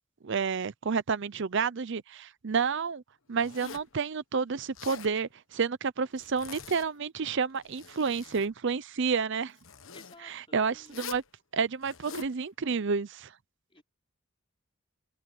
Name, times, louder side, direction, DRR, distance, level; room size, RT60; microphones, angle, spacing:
voice 1, 0.2-3.0 3.3-9.5 10.2-11.2 11.5-13.3, right 5 dB, 60° right, 0.6 m, -30 dB
Zipper (clothing), 3.4-3.9 4.6-5.1 6.2-7.0 7.5-8.5 9.6-10.2 10.9-11.3 11.8-12.3, left 6 dB, 70° left, 1.3 m, -45 dB
voice 2, 9.9-11.1 13.7-13.8, left 3 dB, 25° left, 4.3 m, -55 dB
open air
head